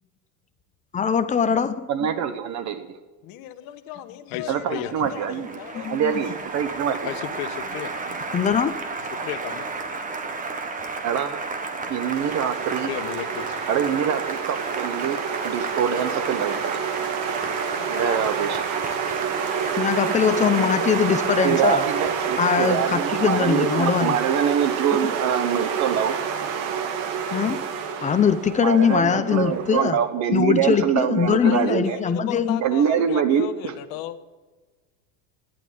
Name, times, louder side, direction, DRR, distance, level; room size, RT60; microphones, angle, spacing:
voice 1, 0.9-1.9 5.7-6.1 8.3-8.7 19.8-21.8 22.4-24.2 27.3-27.6 28.0-30.0 30.3-32.6, left 7 dB, 15° left, 11 dB, 0.6 m, -21 dB
voice 2, 1.9-3.0 4.5-5.6 5.9-7.1 11.0-11.4 11.9-12.9 13.7-16.8 17.9-18.6 21.4-26.2 28.6-32.0 32.6-33.7, right 8 dB, 40° right, 12 dB, 1.1 m, -24 dB
voice 3, 3.2-6.4 9.0-9.3 17.7-18.2 31.2-34.2, left 12 dB, 50° left, 10 dB, 1.3 m, -37 dB
voice 4, 4.3-5.1 7.0-7.9 9.1-9.7 12.8-13.9, left 12 dB, 65° left, 10 dB, 1.5 m, -34 dB
Applause, 4.5-23.4, right 4 dB, 20° right, 1.3 m, -32 dB
sound 1, 12.1-29.9, right 7 dB, 65° right, 2.1 m, -28 dB
14.5 x 10.5 x 9.2 m, 1.3 s
cardioid pair, 155°, 43 cm